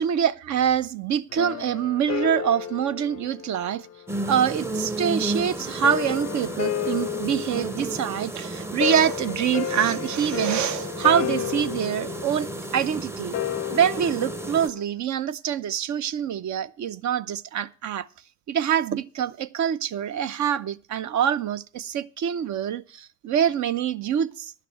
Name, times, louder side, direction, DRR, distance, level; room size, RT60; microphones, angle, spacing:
voice 1, 0.0-3.9 4.2-12.5 12.7-13.4 13.7-18.1 18.5-24.5, right 9 dB, 55° right, 0.7 m, -25 dB
sound 1, 1.3-4.3 5.6-14.8, left 13 dB, 45° left, 0.4 m, -32 dB
sound 2, 4.1-14.7, right 2 dB, 5° right, 0.7 m, -33 dB
11.0 x 5.9 x 8.1 m
hypercardioid pair, 60°, 35 cm